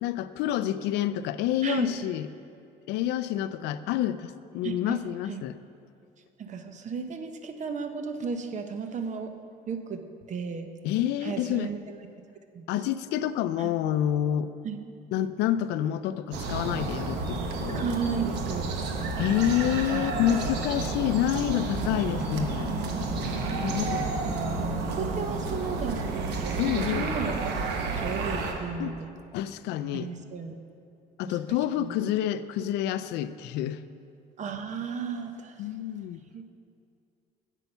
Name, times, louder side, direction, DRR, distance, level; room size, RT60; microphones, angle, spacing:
voice 1, 0.0-2.3 2.9-5.6 10.8-11.7 12.7-14.5 15.1-17.8 19.2-22.8 23.6-24.1 26.6-27.1 28.8-28.9 29.3-30.1 31.2-33.8 35.6-36.2, left 11 dB, 85° left, 14 dB, 0.4 m, -28 dB
voice 2, 1.6-2.0 4.6-5.0 5.3-5.4 6.4-9.3 9.7-10.7 11.2-12.0 12.5-12.6 13.6-13.7 14.6-14.8 17.7-18.7 23.5-23.8 24.9-27.6 27.9-29.1 29.9-30.5 31.3-32.0 34.4-35.6 36.3-36.4, right 5 dB, 45° right, 7 dB, 0.7 m, -34 dB
sound 1, 16.3-28.5, right 3 dB, 85° right, 1.0 m, -30 dB
8.2 x 8.2 x 5.5 m, 2.5 s
cardioid pair, 110°, 17 cm